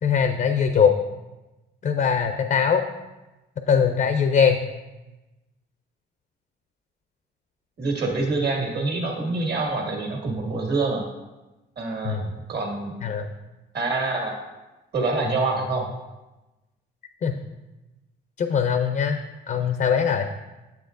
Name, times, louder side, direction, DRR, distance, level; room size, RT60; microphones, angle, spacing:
voice 1, 0.0-0.9 1.8-2.8 3.7-4.6 12.0-12.3 13.0-13.3 17.2-17.4 18.4-19.2 19.5-20.3, left 7 dB, 45° left, 7 dB, 0.5 m, -21 dB
voice 2, 7.8-11.1 11.8-12.2 12.5-12.9 13.7-14.3 14.9-15.9, right 3 dB, 55° right, 0 dB, 1.8 m, -26 dB
7.8 x 7.0 x 2.6 m, 1.1 s
cardioid pair, 90°, 20 cm